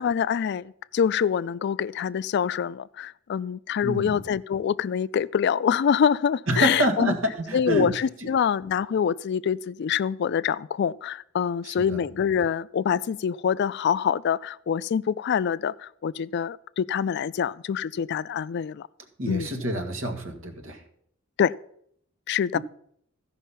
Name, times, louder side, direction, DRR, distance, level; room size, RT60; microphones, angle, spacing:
voice 1, 0.0-7.1 7.5-18.9 19.3-19.5 21.4-21.5 22.3-22.6, left 7 dB, 60° left, 0.3 m, -25 dB
voice 2, 3.8-4.2 6.5-8.3 11.6-12.0 19.2-20.8 22.5-22.6, right 1 dB, 80° right, 1.7 m, -27 dB
14.5 x 5.4 x 5.6 m
head